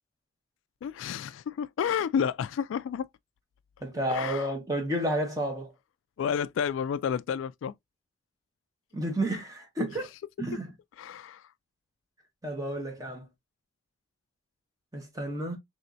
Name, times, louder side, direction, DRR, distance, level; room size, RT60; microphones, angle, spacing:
voice 1, 0.8-3.1 4.0-4.5 6.2-7.7 11.0-11.5, left 7 dB, 85° left, 0.3 m, -30 dB
voice 2, 3.8-5.7 8.9-10.1 10.4-10.7 12.4-13.3 14.9-15.6, right 1 dB, 20° right, 1.1 m, -31 dB
4.3 x 3.1 x 2.6 m
head